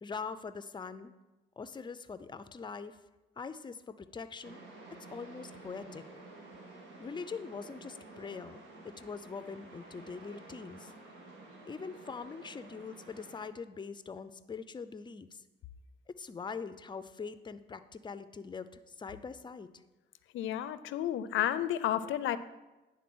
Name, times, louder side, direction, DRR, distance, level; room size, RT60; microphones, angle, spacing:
voice 1, 0.0-1.1 1.6-3.0 3.4-4.6 5.1-6.0 7.0-10.9 11.7-15.4 16.1-19.7, left 5 dB, 25° left, 12 dB, 0.5 m, -43 dB
sound 1, 4.4-13.5, right 2 dB, 75° right, 1.5 m, -51 dB
voice 2, 20.3-22.4, left 11 dB, 75° left, 13 dB, 0.5 m, -31 dB
9.8 x 3.9 x 6.1 m, 1.1 s
cardioid pair, 90°, 20 cm